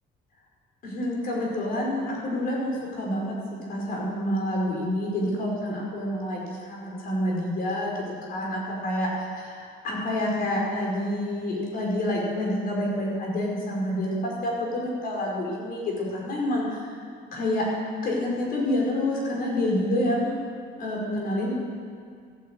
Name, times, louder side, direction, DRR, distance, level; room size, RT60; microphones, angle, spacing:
voice 1, 0.8-3.3 3.7-9.1 9.4-17.0 17.3-17.7 18.0-20.3 20.8-21.5, left 1 dB, 55° left, -3 dB, 5.2 m, -28 dB
14.5 x 9.7 x 8.3 m, 2.1 s
cardioid pair, 145°, 18 cm